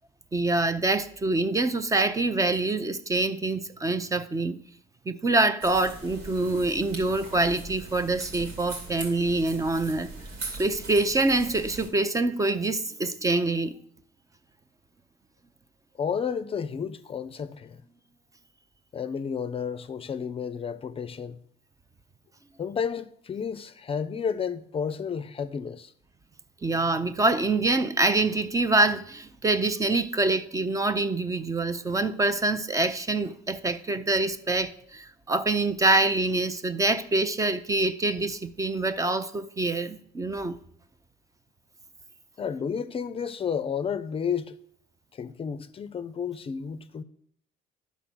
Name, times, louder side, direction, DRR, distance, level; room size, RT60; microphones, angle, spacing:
voice 1, 0.3-4.6 5.1-10.1 10.6-13.8 26.6-40.5, right 2 dB, 20° right, 0.5 m, -25 dB
sound 1, 5.6-11.9, right 3 dB, 85° right, 2.6 m, -40 dB
voice 2, 16.0-17.8 18.9-21.4 22.6-25.9 42.4-44.6 45.1-47.0, left 7 dB, 35° left, 0.5 m, -31 dB
11.0 x 4.1 x 6.1 m
cardioid pair, 110°, 17 cm